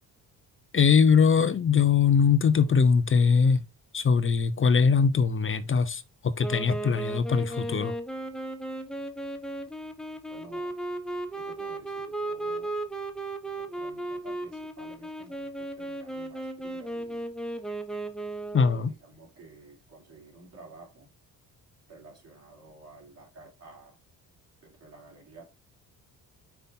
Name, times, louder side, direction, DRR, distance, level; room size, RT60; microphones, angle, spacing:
voice 1, 0.7-3.6 3.9-7.9 18.5-18.9, left 6 dB, 35° left, 0.8 m, -22 dB
Wind instrument woodwind instrument, 6.4-18.8, right 1 dB, ahead, 1.2 m, -35 dB
voice 2, 10.3-10.7 11.4-12.7 13.5-17.3 18.7-21.1 21.9-23.9 24.6-25.5, right 3 dB, 45° right, 3.6 m, -51 dB
5.8 x 4.9 x 4.2 m
cardioid pair, 85°, 36 cm